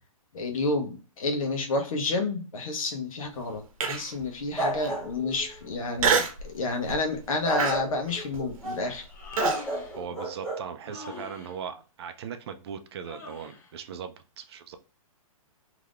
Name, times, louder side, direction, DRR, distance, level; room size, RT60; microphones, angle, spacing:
voice 1, 0.3-9.1, left 3 dB, 70° left, 4 dB, 1.0 m, -30 dB
Human voice, 3.8-4.2 4.8-4.9 6.0-6.5 6.9-7.2 7.6-9.6, right 5 dB, 70° right, 0.8 m, -26 dB
sound 1, 4.6-5.7 7.4-8.8 9.4-10.6, right 1 dB, 5° left, 0.7 m, -32 dB
Human voice 2, 9.0-10.0 10.8-11.6 13.0-13.7, left 3 dB, 35° left, 0.9 m, -42 dB
voice 2, 9.9-14.8, right 7 dB, 45° right, 8 dB, 0.5 m, -39 dB
3.4 x 2.9 x 2.4 m, 0.34 s
hypercardioid pair, 155°, 18 cm